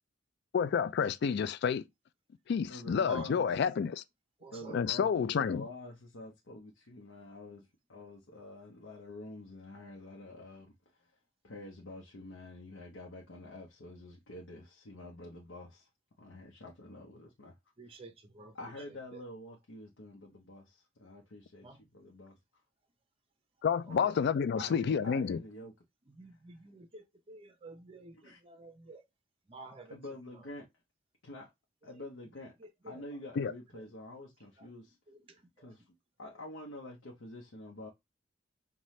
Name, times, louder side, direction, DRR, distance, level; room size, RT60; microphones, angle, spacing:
voice 1, 0.5-1.8 2.5-4.0 4.7-5.6 23.6-25.4 33.4-33.5, left 6 dB, 60° left, 0.3 m, -29 dB
voice 2, 2.7-3.5 4.5-10.7 11.0-11.1 11.4-15.9 16.2-17.6 17.8-18.0 18.5-22.4 24.6-25.7 28.1-28.4 29.9-30.7 31.2-31.5 31.8-32.5 32.8-35.0 35.6-37.9, left 1 dB, 85° left, 0.8 m, -47 dB
voice 3, 4.4-4.8 17.8-18.6 18.9-19.2 21.6-21.8 23.9-24.1 26.1-29.0 29.5-30.0 30.3-30.4 31.8-32.1 32.6-33.2 33.7-33.8 34.6-34.7 35.1-35.7, right 2 dB, 30° right, 0.6 m, -50 dB
5.6 x 2.2 x 3.1 m
head